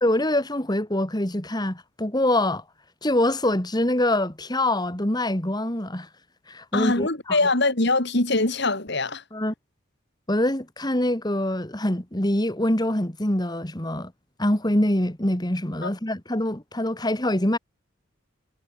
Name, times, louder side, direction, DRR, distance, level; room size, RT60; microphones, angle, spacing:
voice 1, 0.0-2.6 3.0-6.1 6.5-7.4 9.3-9.5 10.3-14.1 14.4-17.6, left 1 dB, 20° left, 2.2 m, -24 dB
voice 2, 6.7-9.2 15.8-15.9, left 2 dB, 55° left, 3.1 m, -23 dB
head